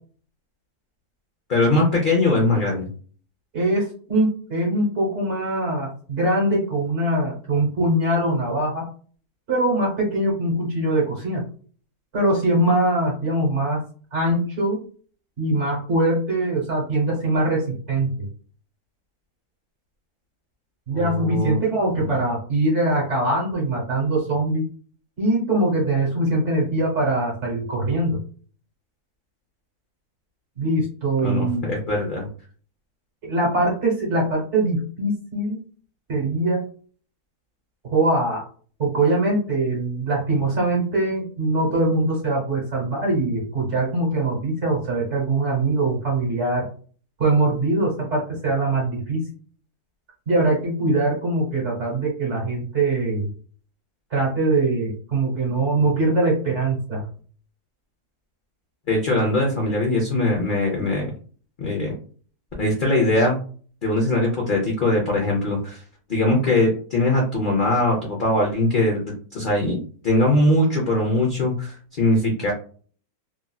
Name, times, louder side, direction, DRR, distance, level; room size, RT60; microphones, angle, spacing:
voice 1, 1.5-2.9 20.9-21.6 22.0-22.1 31.2-32.3 58.9-61.1 61.6-61.9 62.6-63.4 63.8-65.8 66.1-69.7 70.0-72.5, left 2 dB, 50° left, -2 dB, 0.6 m, -21 dB
voice 2, 3.5-8.9 9.5-11.4 12.1-13.8 14.1-14.8 15.4-18.1 20.9-24.7 25.2-28.2 30.6-31.7 33.2-35.6 36.1-36.6 37.9-38.4 38.8-46.7 47.2-49.3 50.3-53.3 54.1-57.0, right 2 dB, 50° right, -2 dB, 1.4 m, -22 dB
3.1 x 2.5 x 2.3 m, 0.42 s
omnidirectional pair, 1.7 m